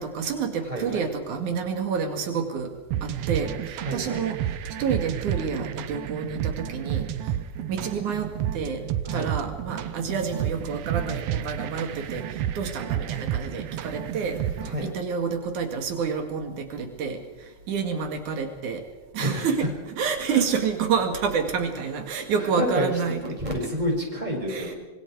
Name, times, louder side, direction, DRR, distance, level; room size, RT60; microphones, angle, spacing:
voice 1, 0.0-2.7 3.0-4.4 4.8-7.1 7.7-8.8 9.1-14.4 14.8-17.2 17.7-18.8 19.1-19.6 20.0-23.2 24.5-24.8, right 6 dB, 85° right, 5 dB, 3.5 m, -28 dB
voice 2, 0.6-1.0 3.8-4.2 9.0-9.3 14.6-14.9 19.2-19.5 20.3-20.4 22.4-22.9 23.2-24.8, equal, 15° right, 0 dB, 6.1 m, -29 dB
sound 1, 2.9-14.9, right 10 dB, 70° right, 1.9 m, -31 dB
25.5 x 25.5 x 4.7 m, 1.1 s
omnidirectional pair, 3.4 m